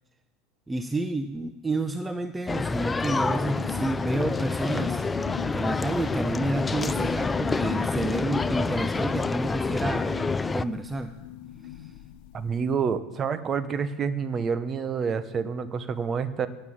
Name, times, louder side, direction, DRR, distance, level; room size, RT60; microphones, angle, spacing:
voice 1, 0.7-5.0 5.5-10.1 10.5-11.1 11.6-11.9, right 2 dB, 15° right, 10 dB, 0.7 m, -30 dB
sound 1, 2.5-10.7, left 3 dB, 15° left, 0.4 m, -28 dB
sound 2, 3.5-12.8, left 12 dB, 65° left, 0.9 m, -39 dB
voice 2, 12.3-16.5, right 6 dB, 35° right, 13 dB, 1.0 m, -28 dB
9.8 x 9.1 x 7.3 m, 1.2 s
hypercardioid pair, 85°, 0 cm